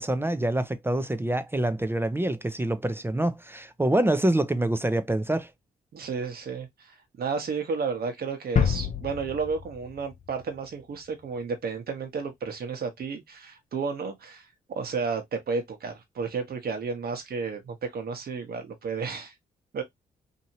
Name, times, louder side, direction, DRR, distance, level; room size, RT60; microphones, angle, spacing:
voice 1, 0.0-5.5, right 1 dB, 10° right, 0.5 m, -26 dB
voice 2, 5.9-19.3 19.7-19.8, right 5 dB, 60° right, 1.1 m, -32 dB
sound 1, 8.6-11.2, left 7 dB, 45° left, 0.7 m, -29 dB
2.8 x 2.7 x 2.7 m
supercardioid pair, 50°, 18 cm